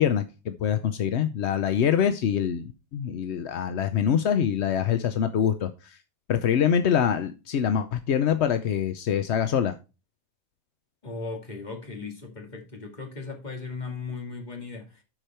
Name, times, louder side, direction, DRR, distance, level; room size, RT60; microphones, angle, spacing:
voice 1, 0.0-6.0 6.3-9.8, left 8 dB, 60° left, 0.7 m, -25 dB
voice 2, 11.0-15.0, left 4 dB, 25° left, 2.5 m, -37 dB
12.0 x 5.0 x 4.4 m
omnidirectional pair, 1.8 m